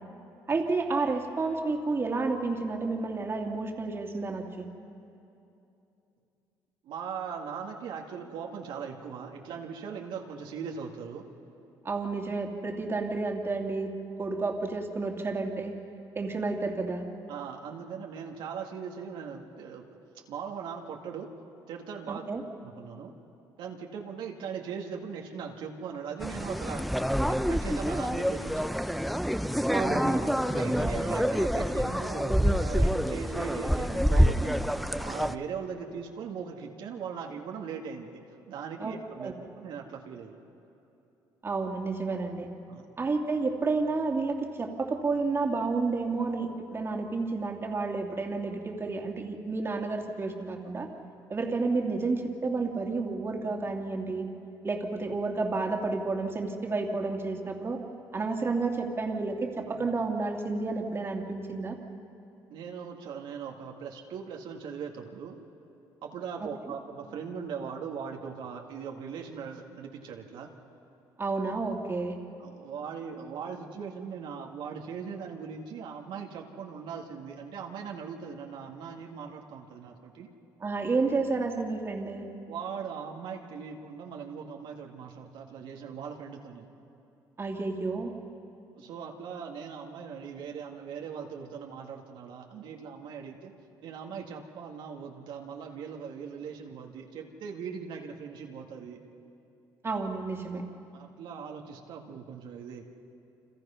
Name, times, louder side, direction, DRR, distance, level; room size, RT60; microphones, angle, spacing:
voice 1, 0.5-4.7 11.8-13.9 14.2-15.8 16.2-17.0 22.1-22.4 29.7-30.3 38.8-39.3 41.4-42.5 43.0-50.9 51.3-54.3 54.6-57.8 58.1-61.8 66.4-66.7 71.2-72.2 80.6-82.3 87.4-88.1 99.8-100.6, right 3 dB, 30° right, 2 dB, 2.5 m, -30 dB
voice 2, 6.8-11.3 17.3-19.9 20.1-21.3 21.7-22.2 22.6-23.1 23.6-26.9 27.3-28.7 30.5-34.6 34.9-38.2 38.5-40.4 42.7-42.9 59.7-59.9 62.5-65.4 66.0-70.5 72.4-80.3 82.5-86.7 88.8-93.5 93.8-99.0 100.9-102.8, right 6 dB, 75° right, 1 dB, 2.0 m, -40 dB
Lake Eacham Tourists Swiming, 26.2-35.3, equal, ahead, 0.7 m, -27 dB
30.0 x 25.5 x 5.7 m, 2.8 s
cardioid pair, 95°, 8 cm